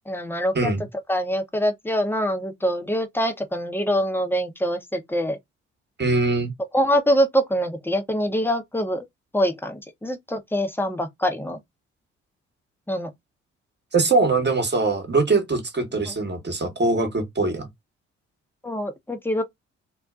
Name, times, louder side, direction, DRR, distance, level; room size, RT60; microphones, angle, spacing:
voice 1, 0.1-0.7 1.1-5.4 6.7-9.1 9.3-11.6 12.9-13.1 16.0-16.1 18.6-19.4, equal, 5° left, 0.8 m, -24 dB
voice 2, 6.0-6.5 13.9-17.7, right 3 dB, 30° right, 1.2 m, -22 dB
2.6 x 2.2 x 2.3 m
hypercardioid pair, 40°, 34 cm